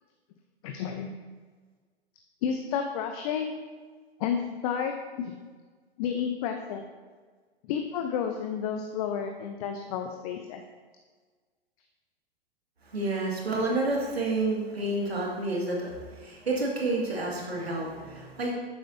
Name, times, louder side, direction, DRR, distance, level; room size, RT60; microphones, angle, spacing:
voice 1, 0.6-1.1 2.4-3.5 4.2-5.3 6.0-6.8 7.6-10.6, left 7 dB, 35° left, 5 dB, 0.8 m, -31 dB
voice 2, 12.8-18.5, right 2 dB, 75° right, -3 dB, 2.4 m, -29 dB
11.5 x 9.4 x 2.8 m, 1.4 s
figure-of-eight pair, 105°, 31 cm